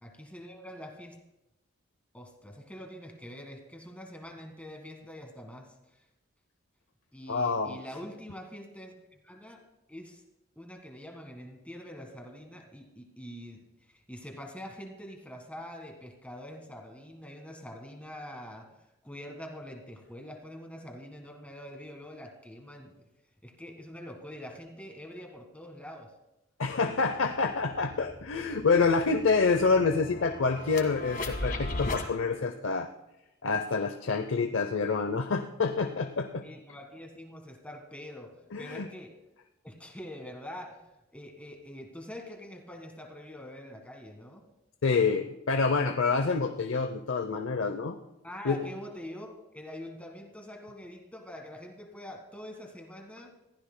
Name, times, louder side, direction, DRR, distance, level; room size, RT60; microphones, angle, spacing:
voice 1, 0.0-1.2 2.1-6.0 7.1-9.6 9.9-10.2 10.5-13.6 13.9-18.7 19.0-22.9 23.4-26.1 36.4-39.1 39.6-44.4 48.2-53.3, equal, 5° left, 3 dB, 1.6 m, -45 dB
voice 2, 7.3-7.8 26.6-32.9 33.4-36.4 38.5-38.9 44.8-48.0 48.4-48.6, left 4 dB, 70° left, 7 dB, 0.7 m, -27 dB
sound 1, 26.6-26.7 27.1-32.1, left 2 dB, 45° left, 1.7 m, -38 dB
22.5 x 15.0 x 2.2 m, 0.93 s
head